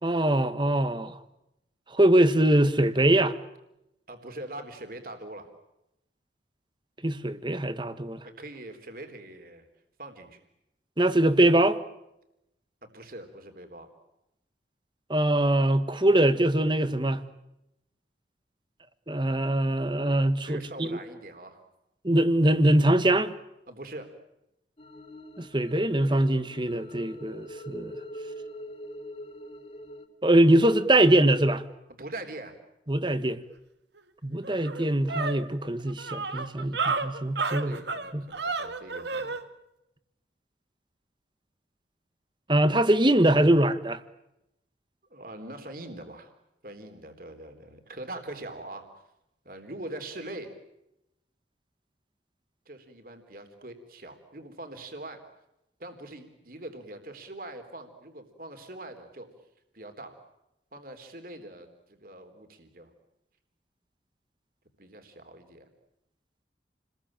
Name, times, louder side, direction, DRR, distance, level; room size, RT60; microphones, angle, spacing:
voice 1, 0.0-1.2 1.9-3.3 7.0-8.2 11.0-11.8 15.1-17.2 19.1-21.0 22.0-23.3 25.4-28.0 30.2-31.6 32.9-33.4 34.2-37.8 38.1-38.2 42.5-44.0, right 1 dB, 25° right, 1.5 m, -23 dB
voice 2, 4.1-5.5 8.2-9.7 10.0-10.4 12.8-13.9 20.4-21.6 23.7-24.1 32.0-32.6 37.6-39.4 45.1-46.3 46.6-48.9 49.5-50.5 52.7-55.2 55.8-59.3 59.7-60.2 60.7-62.9 64.8-65.7, right 1 dB, 50° right, 3.8 m, -42 dB
sound 1, 24.8-30.0, equal, 35° left, 3.4 m, -43 dB
sound 2, 34.0-34.1 34.4-39.4, right 4 dB, 75° right, 1.9 m, -31 dB
29.5 x 21.5 x 9.0 m
head